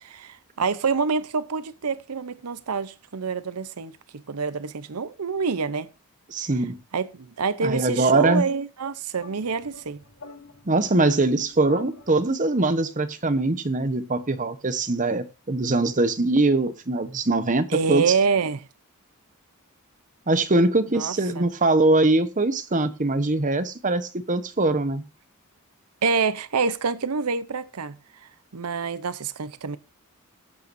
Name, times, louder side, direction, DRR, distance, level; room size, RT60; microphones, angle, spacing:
voice 1, 0.0-3.9 4.3-5.9 6.9-10.0 17.7-18.6 20.9-21.4 26.0-28.0 28.5-29.8, right 5 dB, 90° right, 0.7 m, -26 dB
voice 2, 6.3-6.8 7.6-8.4 10.6-18.1 20.3-25.0, right 2 dB, 35° right, 1.1 m, -22 dB
sound 1, 9.2-12.6, left 3 dB, 90° left, 3.1 m, -44 dB
18.0 x 8.5 x 2.7 m
head